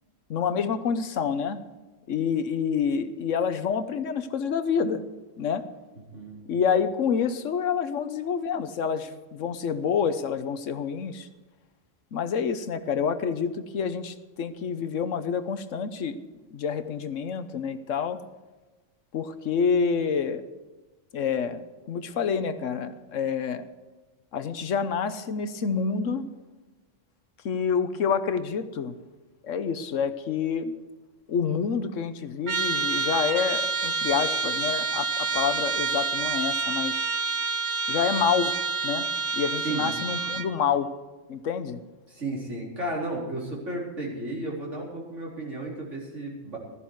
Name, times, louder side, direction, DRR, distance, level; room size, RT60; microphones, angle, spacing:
voice 1, 0.3-1.6 2.1-5.0 5.4-5.6 6.5-11.3 12.1-16.2 16.5-18.2 19.1-20.4 21.1-23.6 24.3-26.3 27.4-29.0 29.4-30.7 31.3-37.1 37.9-38.6 38.8-39.1 39.3-40.9 41.3-41.8, left 6 dB, 75° left, 11 dB, 1.2 m, -28 dB
Trumpet, 32.5-40.5, right 4 dB, 40° right, 0.5 m, -28 dB
voice 2, 42.1-46.6, right 2 dB, 65° right, -3 dB, 4.3 m, -33 dB
15.5 x 13.5 x 4.7 m, 1.2 s
omnidirectional pair, 1.3 m